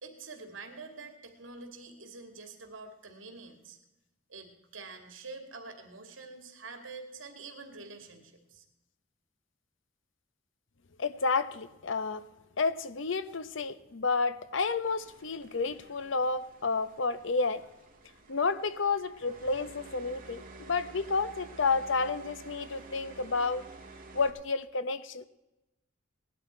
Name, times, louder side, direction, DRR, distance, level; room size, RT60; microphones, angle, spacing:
voice 1, 0.0-3.8 4.3-8.6, right 3 dB, 70° right, 5 dB, 2.4 m, -46 dB
voice 2, 11.0-12.2 12.6-17.6 18.3-23.7 24.1-25.3, left 4 dB, 65° left, 14 dB, 0.8 m, -30 dB
sound 1, 14.8-24.3, right 3 dB, 40° right, 2.1 m, -51 dB
18.0 x 12.0 x 4.4 m, 0.97 s
head